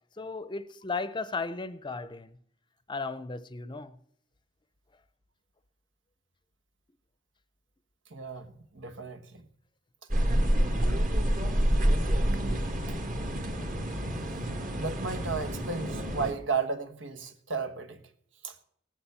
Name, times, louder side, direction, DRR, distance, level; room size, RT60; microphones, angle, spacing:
voice 1, 0.2-2.4 2.9-4.0 10.5-10.9, left 4 dB, 25° left, 0.6 m, -36 dB
voice 2, 8.1-9.5 10.8-11.0 11.9-13.2 14.8-18.0 18.4-18.6, right 4 dB, 85° right, 1.3 m, -35 dB
sound 1, 10.1-16.3, equal, 45° right, 1.7 m, -28 dB
18.0 x 7.1 x 8.2 m
head